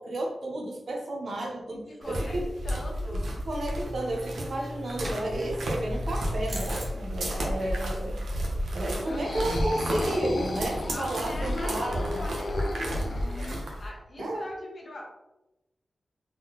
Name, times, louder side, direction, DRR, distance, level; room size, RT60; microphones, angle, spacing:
voice 1, 0.0-2.5 3.5-8.2 8.7-12.3 14.2-14.4, right 1 dB, 60° right, 0 dB, 0.9 m, -32 dB
voice 2, 1.7-2.4 2.6-3.3 7.3-8.0 8.9-9.5 10.9-15.0, left 1 dB, 35° left, -1 dB, 0.9 m, -42 dB
sound 1, 2.0-13.9, equal, 90° right, 0.8 m, -32 dB
sound 2, 3.8-10.0, equal, 20° right, 0.8 m, -41 dB
sound 3, 9.0-13.8, left 2 dB, 50° left, 0.4 m, -35 dB
3.9 x 3.8 x 3.0 m, 0.95 s
wide cardioid pair, 175°, 0 cm